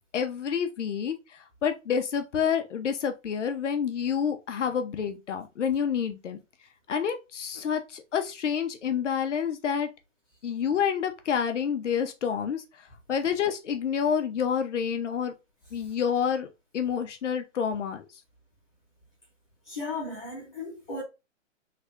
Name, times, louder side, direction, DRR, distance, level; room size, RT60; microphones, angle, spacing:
voice 1, 0.1-6.4 6.9-9.9 10.4-12.6 13.1-15.3 15.7-16.5 16.7-18.1, left 7 dB, 65° left, 0.9 m, -28 dB
voice 2, 19.6-21.0, left 3 dB, 15° left, 1.3 m, -35 dB
3.4 x 2.5 x 3.3 m
hypercardioid pair, 155°, 38 cm